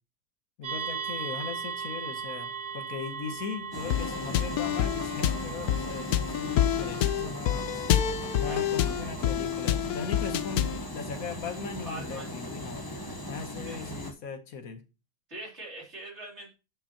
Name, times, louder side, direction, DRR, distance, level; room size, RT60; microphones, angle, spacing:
voice 1, 0.6-7.8 8.4-13.0 13.2-14.8, left 5 dB, 75° left, 1.5 m, -39 dB
sound 1, 0.6-9.3, right 7 dB, 90° right, 2.1 m, -39 dB
sound 2, 3.7-14.1, equal, 15° left, 1.0 m, -39 dB
sound 3, 3.9-10.9, left 10 dB, 90° left, 1.1 m, -28 dB
voice 2, 8.4-9.1 9.8-10.0 11.8-12.3 13.6-13.9 15.3-16.5, right 1 dB, 50° right, 3.5 m, -43 dB
12.0 x 5.4 x 2.9 m
omnidirectional pair, 1.5 m